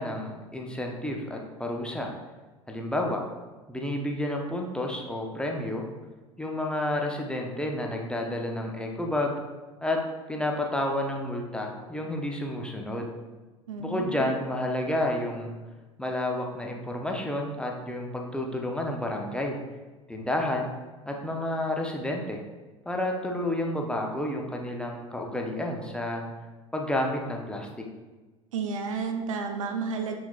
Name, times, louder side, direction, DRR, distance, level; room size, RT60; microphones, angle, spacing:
voice 1, 0.0-2.1 2.7-3.2 3.7-5.9 6.4-9.4 9.8-10.0 10.3-13.1 13.8-15.5 16.0-19.6 20.1-20.7 21.1-22.4 22.9-26.2 26.7-27.8, left 1 dB, 5° left, 1 dB, 0.6 m, -30 dB
voice 2, 13.7-14.3 28.5-30.2, right 4 dB, 70° right, 5 dB, 0.6 m, -31 dB
5.8 x 3.9 x 2.3 m, 1.2 s
figure-of-eight pair, 70°, 17 cm